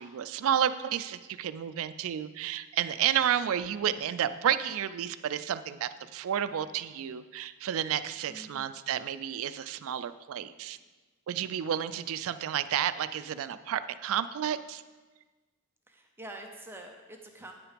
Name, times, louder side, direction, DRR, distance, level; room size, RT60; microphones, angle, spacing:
voice 1, 0.0-10.8 11.3-14.8, right 9 dB, 65° right, 13 dB, 0.3 m, -31 dB
voice 2, 8.3-8.7 15.9-17.5, right 1 dB, 10° right, 3 dB, 0.6 m, -46 dB
9.2 x 5.9 x 5.0 m, 1.3 s
head